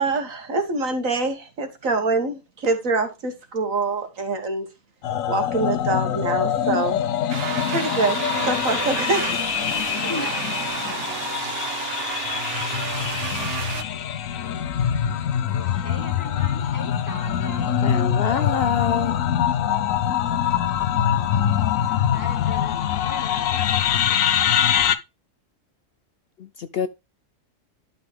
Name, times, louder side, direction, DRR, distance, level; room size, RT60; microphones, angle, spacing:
voice 1, 0.0-4.7 5.3-7.0 7.7-9.2, right 3 dB, 85° right, 2.3 m, -25 dB
sound 1, 5.0-25.0, left 9 dB, 80° left, 1.2 m, -24 dB
sound 2, 7.3-13.8, right 8 dB, 55° right, 0.9 m, -31 dB
voice 2, 10.0-10.5 12.5-13.4 15.5-19.1 21.7-23.6, left 1 dB, 15° left, 1.7 m, -40 dB
voice 3, 17.8-19.3 26.4-26.9, left 7 dB, 60° left, 0.7 m, -26 dB
11.5 x 5.5 x 3.4 m
omnidirectional pair, 1.4 m